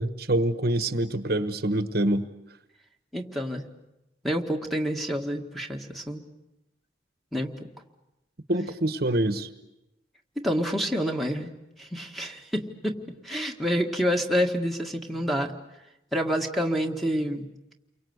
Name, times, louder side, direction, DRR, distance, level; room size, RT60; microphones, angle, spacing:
voice 1, 0.0-2.3 8.5-9.5, right 1 dB, 55° right, 10 dB, 1.2 m, -25 dB
voice 2, 3.1-3.6 4.2-6.2 7.3-7.7 10.4-11.5 11.8-13.0 13.2-15.5 16.1-17.5, equal, ahead, 3 dB, 1.8 m, -28 dB
29.5 x 23.5 x 8.1 m, 0.92 s
head